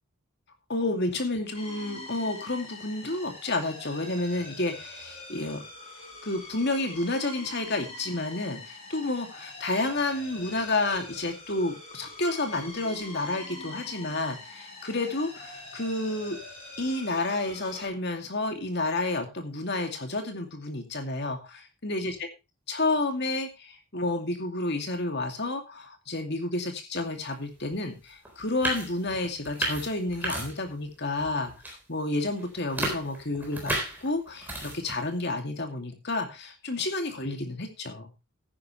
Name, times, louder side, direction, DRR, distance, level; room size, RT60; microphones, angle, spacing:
voice 1, 0.7-5.6 6.2-16.4 16.8-22.3 22.7-33.8 34.0-38.1, left 2 dB, 50° left, 5 dB, 2.4 m, -30 dB
sound 1, 1.5-17.9, left 2 dB, 25° left, 5.5 m, -44 dB
sound 2, 27.7-27.8 28.2-30.9 31.2-31.8 32.2-35.0, right 1 dB, 10° right, 3.8 m, -33 dB
14.0 x 10.5 x 3.2 m, 0.25 s
head